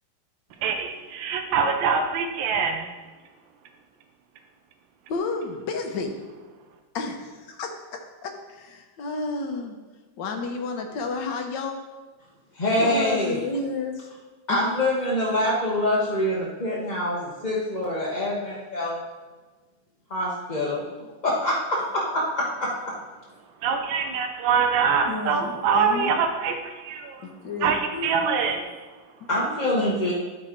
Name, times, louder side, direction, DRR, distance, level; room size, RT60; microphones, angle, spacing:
voice 1, 0.6-2.9 23.6-27.2 27.6-28.7, right 6 dB, 70° right, 4 dB, 1.5 m, -24 dB
voice 2, 5.1-6.2 6.9-7.7 8.2-9.8 10.2-11.7 12.7-14.1 14.5-14.6 25.1-26.2 27.2-27.8, left 3 dB, 65° left, 3 dB, 1.5 m, -31 dB
voice 3, 12.5-13.4 14.5-19.0 20.1-20.8 21.2-22.7 27.9-28.3 29.3-30.1, left 1 dB, 30° left, -5 dB, 0.9 m, -25 dB
12.0 x 4.4 x 4.5 m, 1.3 s
omnidirectional pair, 2.2 m